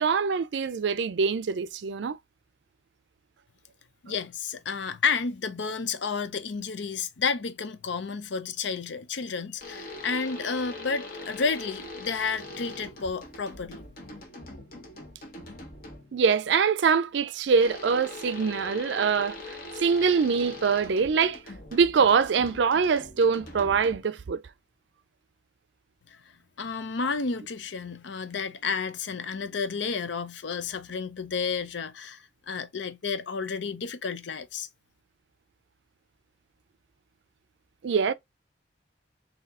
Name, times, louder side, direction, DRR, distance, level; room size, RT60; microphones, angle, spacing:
voice 1, 0.0-2.2 16.1-21.4 21.7-24.4 37.8-38.1, right 5 dB, 75° right, 0.4 m, -24 dB
voice 2, 4.0-13.8 26.6-34.7, left 5 dB, 75° left, 0.6 m, -31 dB
sound 1, 9.6-16.2 17.6-24.3, left 2 dB, 50° left, 1.2 m, -42 dB
4.1 x 2.8 x 3.6 m
head